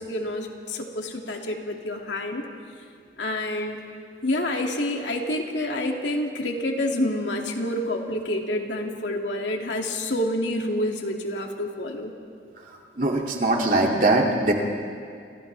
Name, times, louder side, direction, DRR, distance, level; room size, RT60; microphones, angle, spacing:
voice 1, 0.0-2.4 3.2-3.8 4.2-12.1, left 1 dB, 80° left, 1 dB, 2.5 m, -28 dB
voice 2, 12.6-14.5, right 2 dB, 50° right, 0 dB, 2.7 m, -22 dB
30.0 x 28.0 x 3.5 m, 2.3 s
head